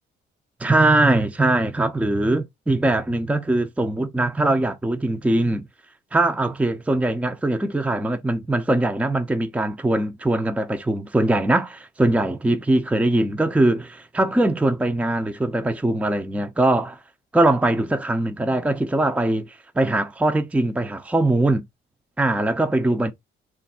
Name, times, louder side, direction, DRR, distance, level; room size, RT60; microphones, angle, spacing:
voice 1, 0.6-5.6 6.1-17.0 17.3-21.6 22.2-23.1, right 2 dB, 5° right, 0.5 m, -21 dB
3.0 x 2.4 x 4.1 m
cardioid pair, 90°, 20 cm